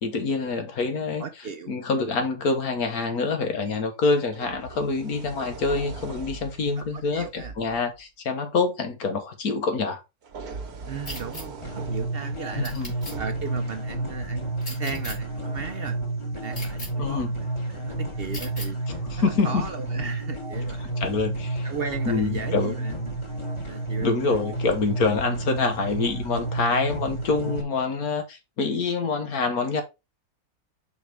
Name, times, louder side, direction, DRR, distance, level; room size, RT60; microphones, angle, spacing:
voice 1, 0.0-1.2 1.7-10.0 12.6-12.9 17.0-17.3 19.1-19.7 20.8-21.7 22.1-22.8 24.0-29.8, left 4 dB, 80° left, 1.8 m, -26 dB
voice 2, 1.2-1.8 6.8-7.5 10.8-16.0 16.2-21.0 21.6-23.1 23.5-24.4, right 5 dB, 50° right, 0.8 m, -36 dB
sound 1, 3.6-3.8 4.3-7.8 10.2-14.2 15.3-15.4, right 4 dB, 90° right, 1.7 m, -41 dB
sound 2, 11.1-11.4 12.6-13.1 14.6-15.2 16.5-16.9 18.3-18.7, left 2 dB, 55° left, 3.4 m, -37 dB
sound 3, 11.6-27.6, right 2 dB, 20° left, 1.4 m, -31 dB
5.8 x 4.4 x 4.6 m
omnidirectional pair, 1.5 m